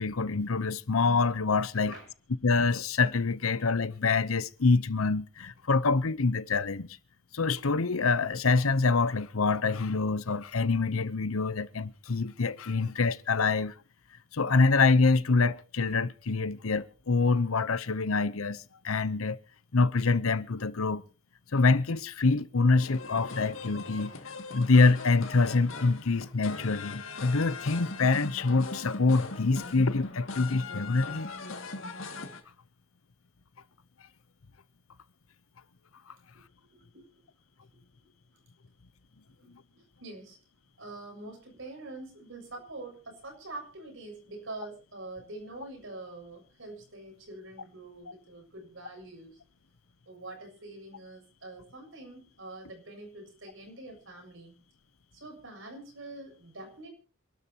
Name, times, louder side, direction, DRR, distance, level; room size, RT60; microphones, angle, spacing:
voice 1, 0.0-1.9 2.4-7.0 7.3-13.7 14.3-19.4 19.7-21.0 21.5-24.1 24.5-31.3, left 3 dB, 90° left, 0.8 m, -26 dB
voice 2, 1.7-2.1 36.7-37.0 39.7-40.4 40.8-49.4 50.1-54.6 55.1-56.9, right 2 dB, 65° right, 7.3 m, -45 dB
sound 1, 22.8-32.4, left 3 dB, 70° left, 2.3 m, -40 dB
27.5 x 12.5 x 2.9 m
head